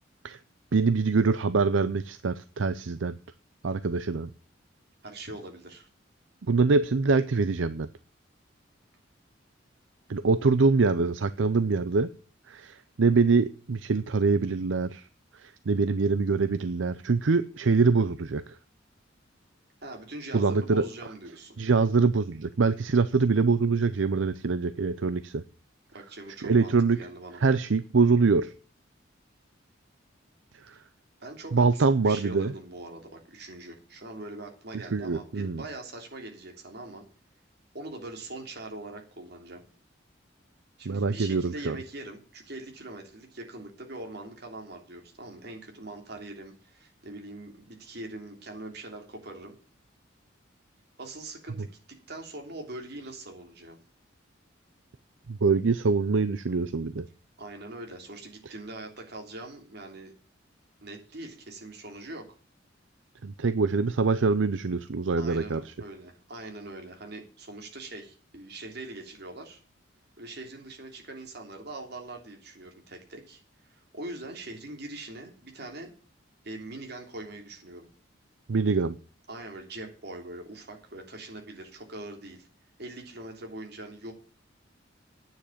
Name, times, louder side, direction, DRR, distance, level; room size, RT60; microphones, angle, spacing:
voice 1, 0.7-3.1 3.6-4.3 6.5-7.9 10.1-12.1 12.5-15.1 15.3-18.6 20.3-20.9 21.6-25.4 26.4-27.0 27.4-28.5 30.6-30.7 31.5-32.5 34.9-35.6 40.9-41.8 55.3-57.1 63.2-65.7 78.5-79.0, right 4 dB, 80° right, 13 dB, 0.6 m, -24 dB
voice 2, 5.0-5.9 19.8-21.6 25.9-27.4 31.2-37.0 37.7-39.6 40.8-49.5 51.0-53.8 57.4-60.1 60.8-62.3 65.2-69.6 70.2-75.9 76.4-77.9 79.3-82.5 82.8-84.1, right 2 dB, 60° right, 2 dB, 3.3 m, -42 dB
9.3 x 7.7 x 8.5 m, 0.38 s
head